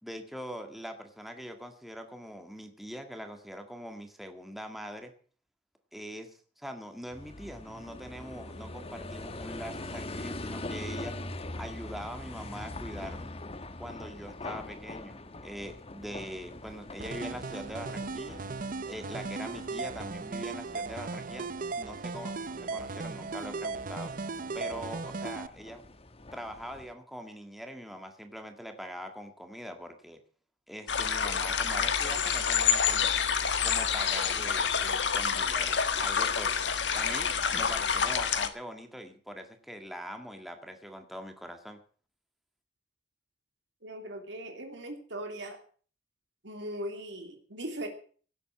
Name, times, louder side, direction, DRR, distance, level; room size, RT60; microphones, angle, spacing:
voice 1, 0.0-5.1 5.9-11.1 11.6-13.3 13.8-18.4 18.8-21.5 21.8-24.1 24.5-25.8 26.3-30.2 30.7-33.1 33.6-41.8, equal, ahead, 5 dB, 1.9 m, -43 dB
sound 1, 7.1-26.9, left 2 dB, 35° left, 1.2 m, -43 dB
sound 2, 17.0-25.5, right 4 dB, 50° right, 0.7 m, -37 dB
sound 3, 30.9-38.5, left 7 dB, 75° left, 1.6 m, -28 dB
voice 2, 43.8-45.6 46.4-47.9, right 1 dB, 80° right, 4 dB, 2.7 m, -39 dB
17.5 x 8.3 x 7.5 m, 0.43 s
head